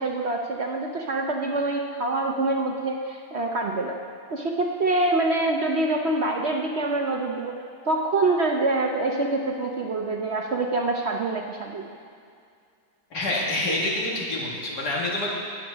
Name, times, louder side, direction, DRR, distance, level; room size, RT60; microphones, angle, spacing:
voice 1, 0.0-4.0 4.3-7.6 7.9-11.9, right 2 dB, 50° right, 1 dB, 0.9 m, -25 dB
voice 2, 13.1-15.3, left 1 dB, 80° left, -4 dB, 2.7 m, -27 dB
11.0 x 9.9 x 6.1 m, 2.3 s
omnidirectional pair, 1.7 m